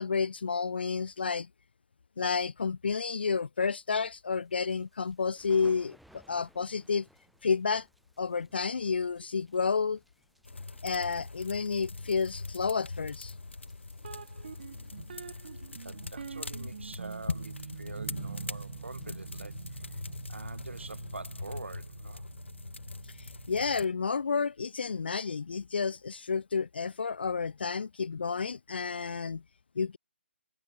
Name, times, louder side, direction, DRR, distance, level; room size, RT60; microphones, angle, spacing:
voice 1, 0.0-1.5 2.2-7.1 7.4-7.9 8.2-10.0 10.8-13.3 23.1-29.4 29.8-30.0, left 5 dB, 55° left, 0.5 m, -30 dB
sound 1, 4.3-21.3, equal, ahead, 3.6 m, -64 dB
sound 2, 10.4-23.9, left 3 dB, 70° left, 1.1 m, -43 dB
sound 3, 14.0-23.8, right 6 dB, 45° right, 0.5 m, -45 dB
voice 2, 15.7-17.5 17.8-20.0 20.3-22.2, right 3 dB, 70° right, 1.6 m, -45 dB
figure-of-eight pair, 140°, 7 cm